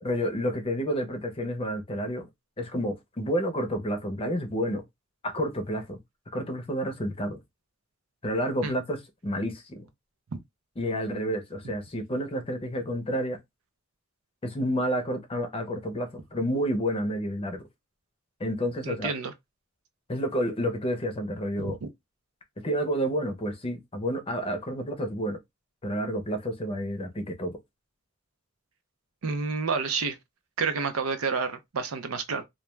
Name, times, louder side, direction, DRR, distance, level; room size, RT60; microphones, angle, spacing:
voice 1, 0.0-2.3 2.6-4.8 5.2-6.0 6.3-7.4 8.2-9.9 10.8-13.4 14.4-17.6 18.4-19.1 20.1-21.8 22.6-25.4 25.8-27.6, equal, 25° left, 0.6 m, -30 dB
voice 2, 18.8-19.3 21.6-21.9 29.2-30.2 30.6-32.4, right 5 dB, 85° right, 0.6 m, -29 dB
2.3 x 2.2 x 3.0 m
head